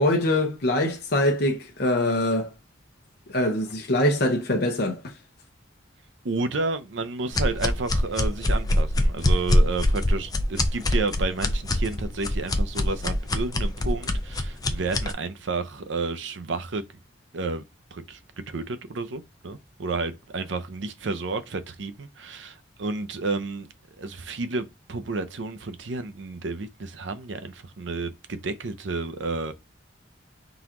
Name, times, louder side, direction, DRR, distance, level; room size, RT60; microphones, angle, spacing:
voice 1, 0.0-2.5 3.3-5.0, left 1 dB, 55° left, 0.9 m, -23 dB
voice 2, 6.2-16.8 17.3-17.6 17.9-18.2 18.5-29.5, right 3 dB, 70° right, 0.6 m, -31 dB
sound 1, 7.3-15.1, left 1 dB, 20° left, 0.5 m, -24 dB
3.9 x 2.9 x 3.7 m
head